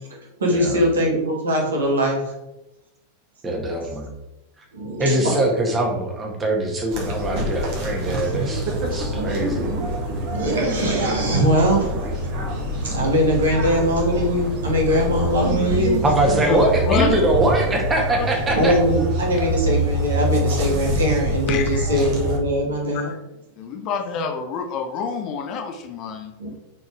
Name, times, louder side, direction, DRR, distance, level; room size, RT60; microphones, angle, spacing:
voice 1, 0.1-2.2 4.7-5.4 7.3-7.5 8.1-8.3 8.9-9.9 10.2-16.4 18.4-23.1 26.4-26.5, equal, 65° right, -1 dB, 2.1 m, -22 dB
voice 2, 3.4-4.1 5.0-9.7 16.0-18.7, right 1 dB, 20° right, 1 dB, 1.7 m, -22 dB
sound 1, 6.9-22.4, equal, 45° right, 1.9 m, -25 dB
voice 3, 16.4-17.1 18.2-18.3 21.5-22.0 22.9-23.2 23.6-26.3, left 5 dB, 40° left, 6 dB, 0.8 m, -27 dB
6.1 x 4.4 x 4.6 m, 0.93 s
figure-of-eight pair, 90°, 0 cm